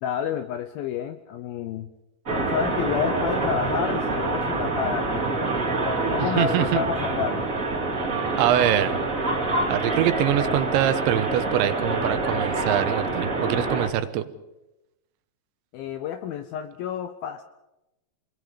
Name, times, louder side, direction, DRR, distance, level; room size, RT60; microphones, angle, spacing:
voice 1, 0.0-1.9 2.4-5.5 6.1-7.6 15.7-17.4, left 8 dB, 80° left, 9 dB, 2.1 m, -30 dB
sound 1, 2.3-13.9, right 2 dB, 25° right, 1.8 m, -26 dB
voice 2, 6.2-6.8 8.4-9.0 9.7-14.3, right 12 dB, 85° right, 10 dB, 3.4 m, -24 dB
27.5 x 21.0 x 5.1 m, 0.94 s
omnidirectional pair, 5.2 m